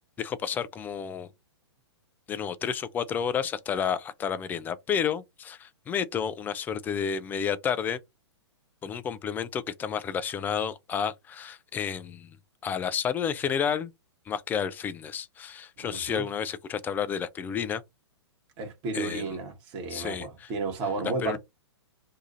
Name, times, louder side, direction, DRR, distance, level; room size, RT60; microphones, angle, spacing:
voice 1, 0.2-1.3 2.3-8.0 8.8-12.4 12.6-13.9 14.3-17.8 18.9-19.3 19.9-20.5 21.2-21.4, left 7 dB, 10° left, 0.3 m, -31 dB
voice 2, 15.8-16.3 18.6-21.4, right 3 dB, 35° right, 1.1 m, -33 dB
2.8 x 2.4 x 3.9 m
figure-of-eight pair, 115°, 15 cm